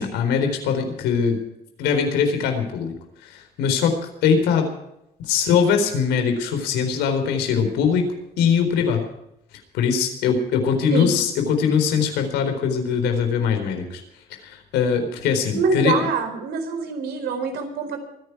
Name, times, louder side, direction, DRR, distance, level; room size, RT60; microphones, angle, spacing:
voice 1, 0.0-1.4 1.8-2.9 3.2-4.7 5.3-8.1 8.4-9.0 9.7-14.0 14.4-15.9, left 6 dB, 90° left, 6 dB, 4.2 m, -21 dB
voice 2, 15.6-18.0, right 5 dB, 70° right, 6 dB, 4.5 m, -24 dB
23.5 x 11.0 x 4.7 m, 0.84 s
cardioid pair, 110°, 17 cm